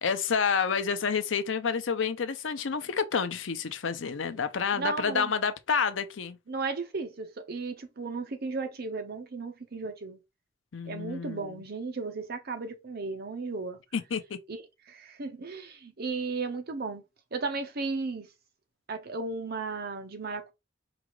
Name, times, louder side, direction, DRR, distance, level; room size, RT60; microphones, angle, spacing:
voice 1, 0.0-6.4 10.7-11.6 13.9-14.4, left 6 dB, 85° left, 0.6 m, -29 dB
voice 2, 4.7-5.3 6.5-10.2 10.9-13.8 14.5-17.0 17.3-18.3 18.9-20.5, right 4 dB, 55° right, 0.8 m, -35 dB
4.8 x 2.5 x 3.1 m
head